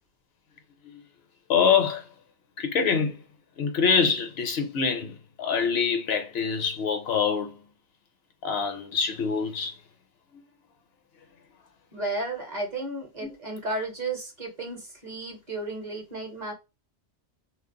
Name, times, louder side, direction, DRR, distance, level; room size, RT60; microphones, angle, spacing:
voice 1, 1.5-2.0 2.6-3.2 3.6-7.5 8.4-9.7 13.2-13.3, left 6 dB, 70° left, 0.8 m, -25 dB
voice 2, 11.9-16.5, right 2 dB, 45° right, 0.8 m, -33 dB
2.2 x 2.0 x 3.7 m
omnidirectional pair, 1.1 m